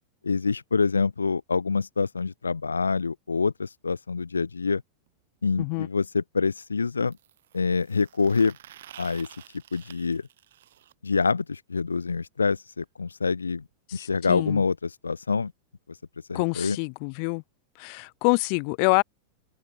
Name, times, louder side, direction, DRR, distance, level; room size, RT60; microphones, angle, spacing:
voice 1, 0.2-4.8 5.4-7.2 7.5-8.6 9.0-9.3 9.7-10.3 11.0-13.6 13.9-15.5 15.9-16.0 16.3-16.8, left 4 dB, 75° left, 0.6 m, -26 dB
sound 1, 5.1-5.2 7.1-10.9 12.8-12.9 13.2-13.3 13.6-13.7 14.6-14.7, right 12 dB, 60° right, 3.1 m, -50 dB
voice 2, 14.0-14.6 16.3-17.4 17.8-19.0, left 40 dB or more, 45° left, 1.1 m, -26 dB
figure-of-eight pair, 90°, 0 cm